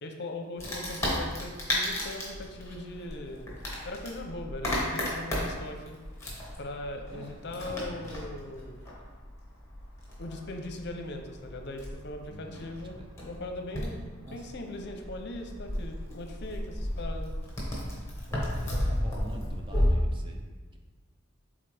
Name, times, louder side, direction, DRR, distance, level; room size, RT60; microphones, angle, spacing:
voice 1, 0.0-3.5 3.8-6.0 6.6-8.8 10.2-13.0 13.2-14.0 14.3-17.3 18.4-18.5, left 2 dB, 55° left, 4 dB, 0.7 m, -40 dB
Wood, 0.6-19.9, left 1 dB, 15° left, 1.5 m, -34 dB
voice 2, 0.6-1.1 7.1-8.2 12.3-13.1 14.2-14.5 18.3-20.8, right 1 dB, 25° right, 3 dB, 0.5 m, -48 dB
8.0 x 3.8 x 3.4 m, 1.3 s
head